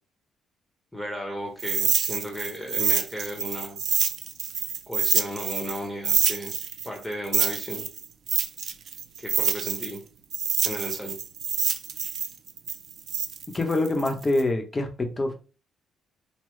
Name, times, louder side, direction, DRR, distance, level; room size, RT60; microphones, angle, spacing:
voice 1, 0.9-3.8 4.9-6.5 6.8-7.9 9.2-10.0 10.6-11.2, equal, 5° left, 0 dB, 1.3 m, -34 dB
sound 1, 1.6-5.8 6.0-10.0 10.3-14.4, right 7 dB, 60° right, 0.6 m, -26 dB
voice 2, 13.5-15.3, left 2 dB, 25° left, 4 dB, 1.1 m, -25 dB
5.6 x 2.3 x 3.3 m, 0.34 s
cardioid pair, 90°, 0 cm